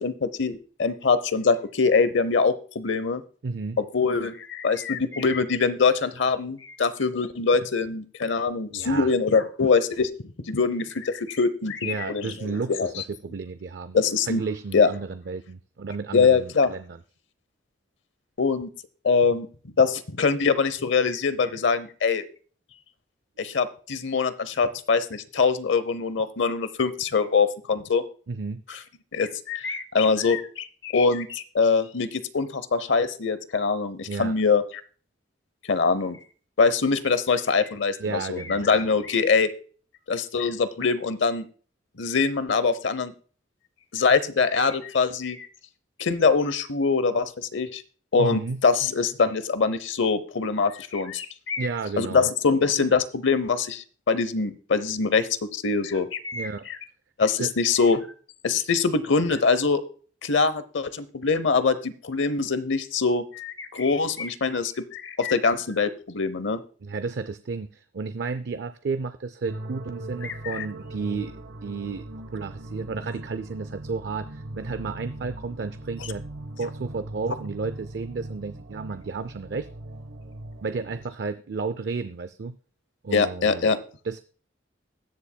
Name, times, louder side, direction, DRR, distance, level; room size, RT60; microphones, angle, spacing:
voice 1, 0.0-3.2 3.8-10.1 10.5-13.0 13.9-14.4 14.7-14.9 16.1-16.7 18.4-18.7 19.0-19.5 19.8-22.2 23.4-28.0 28.7-28.8 29.1-34.6 35.7-36.2 36.6-39.5 40.1-41.5 42.0-43.1 43.9-45.5 46.0-47.8 48.1-51.7 52.0-56.8 57.2-58.1 58.4-59.8 60.2-66.6 70.2-70.6 83.1-83.8, left 4 dB, 75° left, 14 dB, 0.8 m, -23 dB
voice 2, 3.4-3.8 8.7-9.1 11.8-14.0 14.3-17.0 28.3-28.6 34.1-34.4 38.0-38.8 48.2-48.6 51.6-52.3 56.3-56.7 57.4-57.5 66.8-71.4 71.6-72.0 72.3-76.2 76.6-79.7 80.6-82.6 83.0-83.7 84.0-84.2, right 4 dB, 55° right, 12 dB, 0.4 m, -32 dB
sound 1, 69.5-81.1, right 1 dB, 75° right, 0.9 m, -40 dB
21.5 x 7.1 x 2.2 m, 0.41 s
head